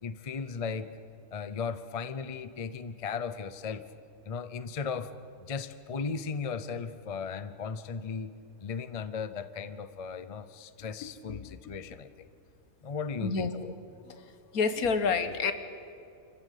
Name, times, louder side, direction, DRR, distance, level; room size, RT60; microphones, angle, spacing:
voice 1, 0.0-0.9 1.3-3.8 4.2-5.1 5.4-8.3 8.6-12.3 12.8-13.7, left 5 dB, 40° left, 13 dB, 0.5 m, -36 dB
voice 2, 11.0-11.7 13.2-13.5 14.0-15.5, left 5 dB, 70° left, 10 dB, 1.6 m, -30 dB
26.0 x 15.0 x 8.3 m, 2.6 s
omnidirectional pair, 1.6 m